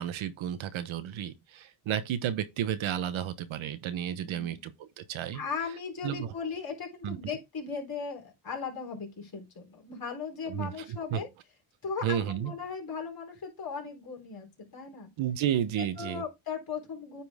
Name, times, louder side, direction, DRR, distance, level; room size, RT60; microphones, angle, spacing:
voice 1, 0.0-5.4 6.0-6.3 7.0-7.2 10.5-11.2 12.0-12.5 15.2-16.2, right 10 dB, 75° right, 1.1 m, -32 dB
voice 2, 4.3-4.6 5.3-11.3 11.8-15.1 15.8-17.2, left 5 dB, 45° left, 4.0 m, -37 dB
9.4 x 4.4 x 3.6 m
cardioid pair, 85°, 48 cm